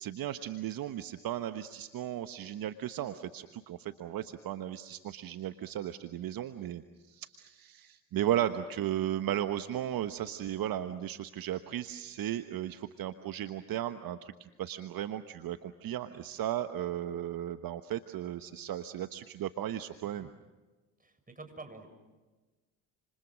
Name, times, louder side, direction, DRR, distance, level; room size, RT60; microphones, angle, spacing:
voice 1, 0.0-20.3, right 11 dB, 60° right, 10 dB, 1.3 m, -35 dB
voice 2, 21.0-21.9, right 3 dB, 20° right, 7 dB, 6.9 m, -48 dB
30.0 x 27.5 x 6.3 m, 1.2 s
hypercardioid pair, 55°, 40 cm